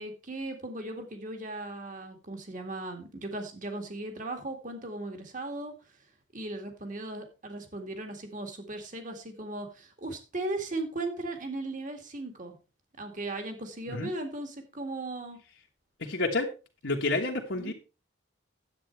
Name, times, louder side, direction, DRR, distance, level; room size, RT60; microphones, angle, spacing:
voice 1, 0.0-5.7 6.3-12.6 13.0-15.4 17.6-17.7, right 2 dB, 40° right, 5 dB, 2.1 m, -37 dB
voice 2, 16.0-16.5 16.8-17.7, left 2 dB, 65° left, -1 dB, 1.5 m, -29 dB
10.5 x 8.3 x 4.6 m, 0.32 s
head